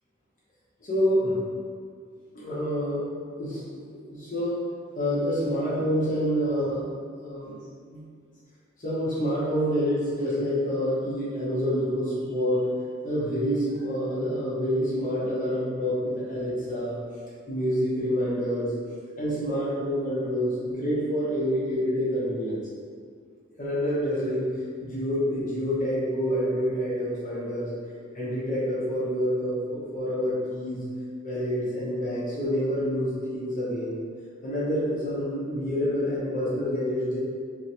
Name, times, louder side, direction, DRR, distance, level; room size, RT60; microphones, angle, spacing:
voice 1, 0.8-1.4 2.3-3.0 3.4-3.6 4.1-4.6 4.9-6.8 7.2-7.5 7.9-8.0 8.8-12.7 13.0-17.0 17.5-18.7 19.2-22.6 23.6-24.5 24.8-27.7 28.1-30.9 31.2-34.0 34.4-37.2, equal, 40° left, -9 dB, 0.9 m, -27 dB
3.8 x 3.2 x 2.9 m, 2.1 s
head